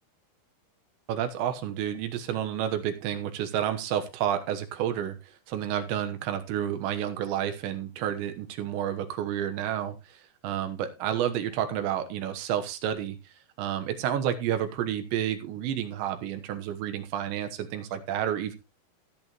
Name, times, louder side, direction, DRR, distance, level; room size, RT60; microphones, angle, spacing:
voice 1, 1.1-13.2 13.6-18.6, right 10 dB, 90° right, 7 dB, 3.5 m, -30 dB
16.5 x 8.7 x 3.1 m, 0.28 s
omnidirectional pair, 5.0 m